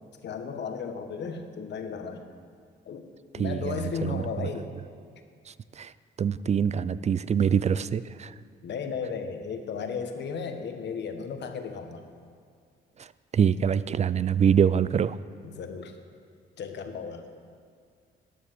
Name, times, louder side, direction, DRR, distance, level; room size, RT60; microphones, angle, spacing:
voice 1, 0.2-2.2 2.9-4.7 8.6-12.1 15.4-16.0 16.6-17.3, left 5 dB, 60° left, 6 dB, 1.3 m, -35 dB
voice 2, 3.4-4.2 5.8-5.9 6.2-8.3 13.3-15.2, right 8 dB, 35° right, 16 dB, 0.4 m, -24 dB
12.5 x 10.0 x 6.3 m, 2.2 s
cardioid pair, 90°, 20 cm